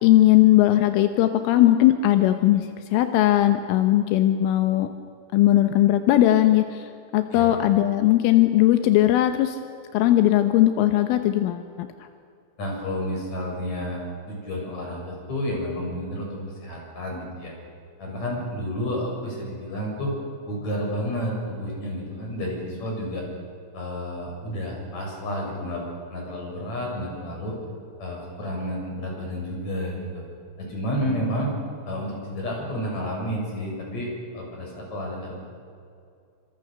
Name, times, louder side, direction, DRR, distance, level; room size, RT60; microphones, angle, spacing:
voice 1, 0.0-4.9 5.3-6.9 7.1-9.6 9.9-11.9, left 14 dB, 85° left, 8 dB, 3.6 m, -19 dB
voice 2, 12.6-14.0 14.3-17.5 18.0-20.1 20.5-23.2 23.7-27.6 28.0-30.2 30.6-31.5 31.9-34.1 34.3-35.3, equal, 35° left, -1 dB, 8.1 m, -30 dB
29.0 x 26.0 x 6.7 m, 2.4 s
omnidirectional pair, 5.6 m